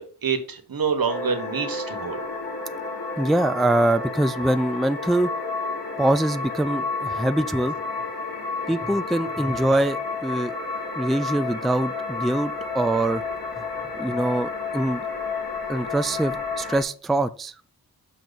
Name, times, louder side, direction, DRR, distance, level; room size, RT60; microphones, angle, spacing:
voice 1, 0.0-2.2, right 6 dB, 70° right, 7 dB, 1.4 m, -27 dB
sound 1, 1.1-16.8, left 4 dB, 75° left, 3.3 m, -31 dB
voice 2, 3.2-5.3 6.0-7.8 8.7-10.5 11.0-13.2 14.0-15.0 15.7-17.5, right 1 dB, ahead, 12 dB, 0.3 m, -23 dB
6.7 x 6.1 x 4.0 m, 0.40 s
wide cardioid pair, 80°, 36 cm